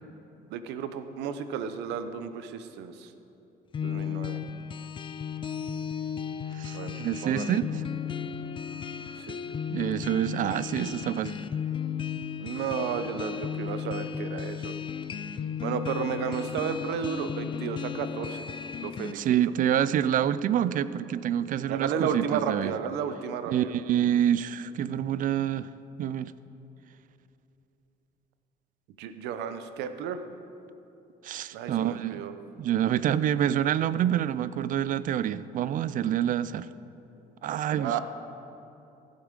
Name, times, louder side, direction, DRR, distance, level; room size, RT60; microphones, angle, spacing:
voice 1, 0.5-3.1 3.8-4.4 6.7-7.5 9.2-9.4 12.4-14.7 15.6-18.5 18.8-19.4 21.7-23.7 29.0-30.3 31.5-32.3 37.7-38.0, right 7 dB, 85° right, 10 dB, 0.8 m, -33 dB
sound 1, 3.7-19.1, left 7 dB, 30° left, 0.4 m, -35 dB
voice 2, 6.5-7.7 9.7-11.4 19.1-22.7 23.5-25.7 26.0-26.3 31.2-32.2 32.6-36.7 37.4-38.0, right 10 dB, 55° right, 16 dB, 0.4 m, -27 dB
15.0 x 8.1 x 5.2 m, 2.9 s
cardioid pair, 110°, 17 cm